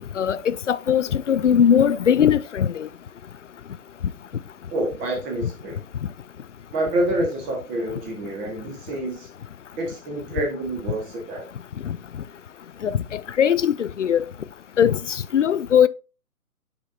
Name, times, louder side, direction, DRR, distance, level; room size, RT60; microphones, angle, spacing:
voice 1, 0.2-2.9 11.8-12.0 12.8-14.2 14.8-15.9, left 8 dB, 55° left, 0.5 m, -20 dB
voice 2, 4.7-5.8 6.7-9.3 9.8-11.5, right 1 dB, 15° right, 1.6 m, -27 dB
9.0 x 5.0 x 2.7 m
figure-of-eight pair, 135°, 46 cm